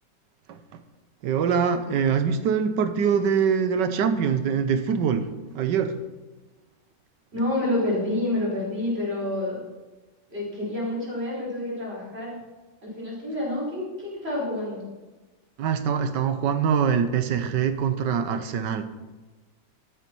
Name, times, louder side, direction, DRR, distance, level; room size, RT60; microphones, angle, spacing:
voice 1, 0.5-0.8 1.2-5.3 5.5-6.0 15.6-18.9, right 7 dB, 85° right, 1.5 m, -24 dB
voice 2, 7.3-9.6 10.3-12.4 12.8-14.8, left 1 dB, 35° right, 5.3 m, -28 dB
13.5 x 9.8 x 4.6 m
omnidirectional pair, 1.9 m